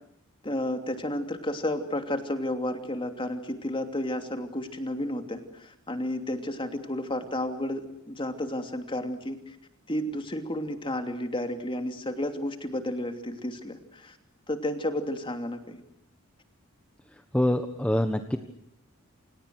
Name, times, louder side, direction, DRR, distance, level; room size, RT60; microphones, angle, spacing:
voice 1, 0.4-9.6 9.9-14.2 14.5-15.8, left 1 dB, 25° left, 6 dB, 2.9 m, -32 dB
voice 2, 17.3-18.4, left 1 dB, 5° left, 7 dB, 1.3 m, -25 dB
29.0 x 27.5 x 6.4 m, 0.75 s
head